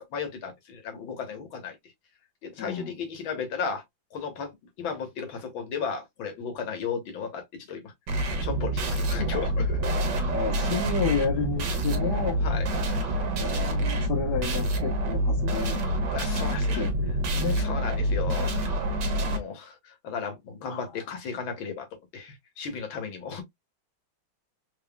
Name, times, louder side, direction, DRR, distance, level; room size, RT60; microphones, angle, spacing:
voice 1, 0.0-1.8 2.4-3.8 4.1-7.9 8.4-9.9 12.4-12.7 16.1-16.9 17.5-18.6 18.9-21.9 22.1-23.4, left 6 dB, 80° left, 1.9 m, -35 dB
voice 2, 2.6-2.9 10.3-12.4 13.4-15.9 16.4-17.6 20.7-20.9, left 6 dB, 65° left, 1.6 m, -31 dB
sound 1, 8.1-19.4, right 1 dB, 65° right, 1.7 m, -27 dB
4.2 x 3.6 x 2.2 m
omnidirectional pair, 2.1 m